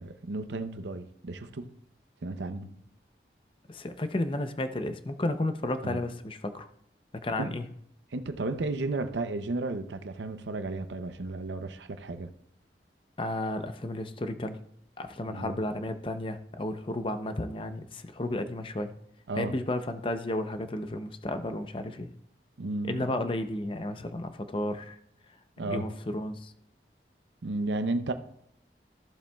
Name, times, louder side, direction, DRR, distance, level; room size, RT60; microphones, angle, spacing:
voice 1, 0.0-1.7 2.2-2.7 5.8-6.0 7.3-7.5 8.1-12.3 15.3-15.6 19.3-19.5 22.6-23.1 25.6-25.9 27.4-28.1, right 2 dB, 90° right, 0.6 m, -33 dB
voice 2, 3.7-6.7 7.2-7.7 13.2-14.6 15.0-18.9 19.3-22.1 22.8-25.0 25.6-26.5, left 1 dB, 30° left, 0.6 m, -33 dB
15.0 x 7.1 x 2.3 m
head